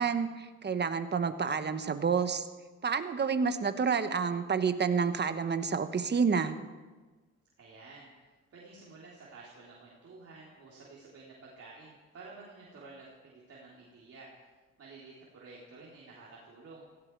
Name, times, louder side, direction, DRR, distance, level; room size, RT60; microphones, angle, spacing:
voice 1, 0.0-2.4 2.8-6.6, right 6 dB, 35° right, 10 dB, 1.2 m, -29 dB
voice 2, 7.6-8.1 8.5-14.5 14.8-16.9, right 3 dB, 50° right, -5 dB, 3.6 m, -51 dB
17.0 x 15.5 x 4.7 m, 1.3 s
cardioid pair, 90°, 30 cm